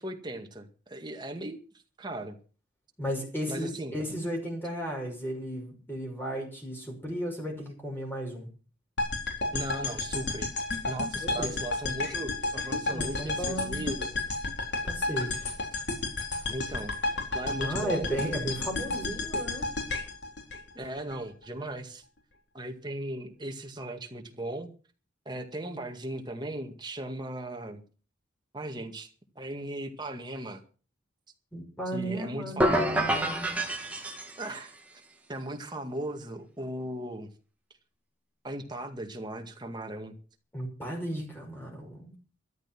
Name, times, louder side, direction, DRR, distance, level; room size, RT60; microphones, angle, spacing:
voice 1, 0.0-1.6 2.0-2.4 3.5-4.0 9.5-10.5 10.9-14.1 16.5-18.3 20.8-22.0 22.5-24.7 25.3-27.8 28.5-29.1 29.4-30.6 31.9-32.7 34.4-35.0 35.3-37.3 38.4-40.2, right 1 dB, 25° right, 5 dB, 2.0 m, -37 dB
voice 2, 3.0-8.5 11.2-11.6 12.8-13.9 14.8-15.5 17.6-19.7 31.5-33.6 40.5-42.1, equal, 10° left, 0 dB, 5.8 m, -35 dB
sound 1, 9.0-21.2, left 2 dB, 60° left, 4.1 m, -32 dB
sound 2, 32.6-34.7, right 1 dB, 5° right, 2.2 m, -28 dB
13.5 x 12.0 x 6.1 m, 0.37 s
head